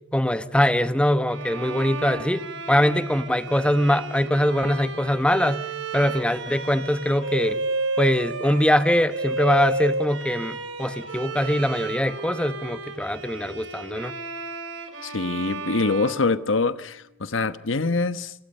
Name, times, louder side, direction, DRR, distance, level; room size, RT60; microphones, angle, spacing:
voice 1, 0.1-5.6 5.9-7.6 8.0-14.1, left 1 dB, 5° left, 1.0 m, -22 dB
Bowed string instrument, 1.3-17.0, right 3 dB, 75° right, 4.5 m, -32 dB
voice 2, 15.0-18.3, left 3 dB, 80° left, 1.1 m, -24 dB
29.5 x 22.5 x 5.5 m
head